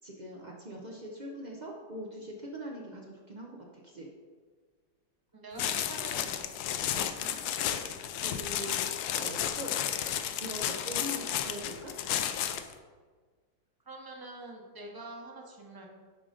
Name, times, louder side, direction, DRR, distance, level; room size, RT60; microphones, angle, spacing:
voice 1, 0.0-4.1 7.2-7.4 8.1-8.8 9.2-10.0 10.4-12.0, equal, 70° right, -1 dB, 0.4 m, -42 dB
voice 2, 5.3-6.4 13.8-15.9, right 2 dB, 20° right, 0 dB, 0.6 m, -45 dB
sound 1, 5.6-12.7, left 10 dB, 70° left, 1.0 m, -32 dB
10.5 x 3.8 x 5.0 m, 1.5 s
omnidirectional pair, 2.0 m